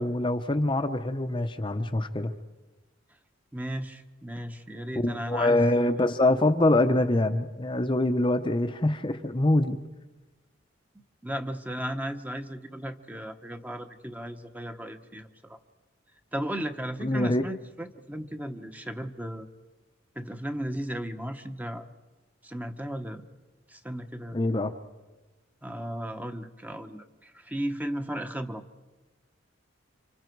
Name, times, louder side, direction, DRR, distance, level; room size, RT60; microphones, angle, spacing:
voice 1, 0.0-2.3 4.9-9.8 17.0-17.4 24.3-24.7, left 1 dB, 25° left, 7 dB, 0.8 m, -24 dB
voice 2, 3.5-5.6 11.2-15.6 16.3-19.5 20.1-21.9 22.4-23.2 23.7-24.4 25.6-28.6, equal, 10° right, 7 dB, 1.1 m, -35 dB
30.0 x 26.0 x 4.7 m, 1.2 s
head